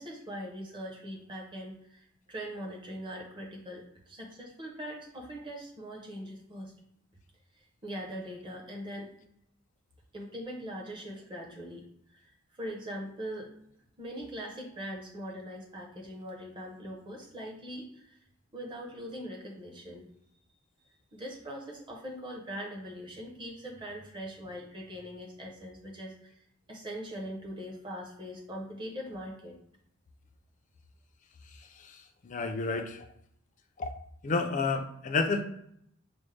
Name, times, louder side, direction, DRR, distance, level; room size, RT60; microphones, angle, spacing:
voice 1, 0.0-6.7 7.8-9.1 10.1-13.5 14.0-18.2 18.5-20.1 21.1-26.4 26.7-29.6, equal, 20° right, -1 dB, 0.7 m, -41 dB
voice 2, 31.5-33.1 33.8-33.9 34.2-35.5, left 3 dB, 35° left, 6 dB, 0.4 m, -31 dB
5.0 x 2.1 x 3.2 m, 0.71 s
head